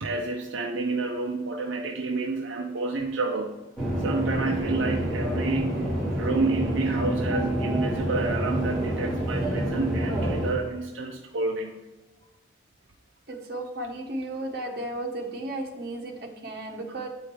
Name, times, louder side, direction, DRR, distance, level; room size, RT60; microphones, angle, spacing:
voice 1, 0.0-3.5 4.0-11.8, right 3 dB, 75° right, 1 dB, 0.7 m, -29 dB
sound 1, 3.8-10.5, right 1 dB, 5° left, 2.5 m, -28 dB
voice 2, 13.3-17.1, right 1 dB, 50° right, 1 dB, 1.3 m, -34 dB
8.0 x 5.1 x 4.6 m, 1.1 s
head